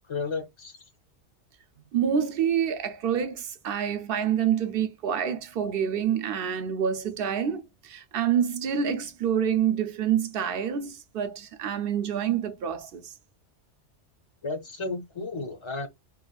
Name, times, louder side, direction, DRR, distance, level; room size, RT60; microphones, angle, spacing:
voice 1, 0.1-0.7 14.4-15.9, left 3 dB, 35° left, 0.6 m, -33 dB
voice 2, 1.9-13.1, right 8 dB, 65° right, 0.7 m, -27 dB
3.0 x 2.4 x 2.3 m
omnidirectional pair, 1.2 m